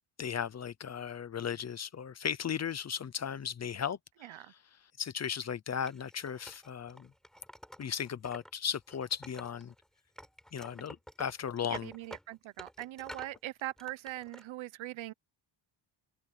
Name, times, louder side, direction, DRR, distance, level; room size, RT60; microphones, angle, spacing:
voice 1, 0.2-4.6 5.0-7.1 7.8-9.7 10.5-11.9, left 8 dB, 30° left, 0.7 m, -36 dB
Wood, 5.8-8.5 8.8-9.8 10.2-13.4 13.8-14.4, equal, ahead, 4.9 m, -50 dB
voice 2, 11.8-15.1, right 15 dB, 65° right, 0.9 m, -41 dB
open air
cardioid pair, 170°, 50 cm